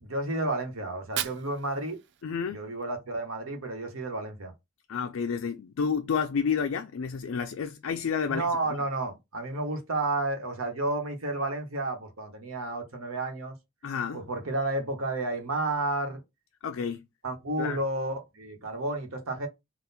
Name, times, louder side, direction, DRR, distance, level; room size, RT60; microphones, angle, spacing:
voice 1, 0.0-2.0 2.5-4.5 8.2-13.5 14.1-16.2 17.2-19.5, right 2 dB, 80° right, 1.3 m, -31 dB
Fire, 0.8-2.9, right 11 dB, 60° right, 0.4 m, -38 dB
voice 2, 2.2-2.7 4.9-8.5 13.8-14.2 16.6-17.1 17.6-17.8, left 6 dB, 70° left, 0.4 m, -30 dB
4.0 x 2.4 x 4.1 m
head